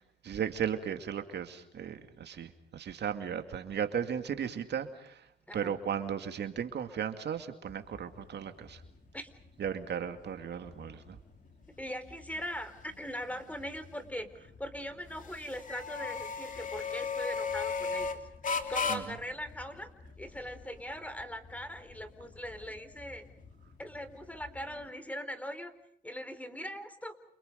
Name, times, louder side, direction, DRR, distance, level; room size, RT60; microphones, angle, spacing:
voice 1, 0.2-5.3 5.5-8.8 9.6-11.2 18.9-19.0, right 8 dB, 60° right, 7 dB, 2.4 m, -36 dB
sound 1, 7.7-24.9, left 5 dB, 40° left, 3.4 m, -40 dB
voice 2, 11.8-18.1 18.5-19.9 20.2-23.2 23.8-25.7 26.0-27.1, equal, 5° left, 11 dB, 4.1 m, -41 dB
29.5 x 29.5 x 5.3 m, 0.70 s
cardioid pair, 90°, 20 cm